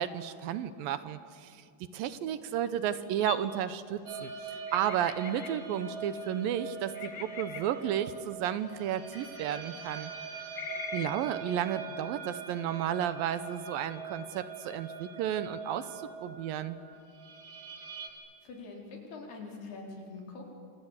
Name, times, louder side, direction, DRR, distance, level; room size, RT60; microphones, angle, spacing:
voice 1, 0.0-1.6 1.9-4.3 4.7-10.1 10.9-16.8, right 10 dB, 75° right, 13 dB, 2.5 m, -33 dB
sound 1, 3.2-3.6 4.7-5.8 6.9-7.9 9.1-9.4 10.6-11.1, left 8 dB, 65° left, 2.9 m, -42 dB
sound 2, 4.1-18.1, right 4 dB, 50° right, 4.2 m, -43 dB
voice 2, 18.4-20.5, left 3 dB, 85° left, 0 dB, 6.3 m, -44 dB
27.0 x 27.0 x 8.2 m, 2.3 s
omnidirectional pair, 4.4 m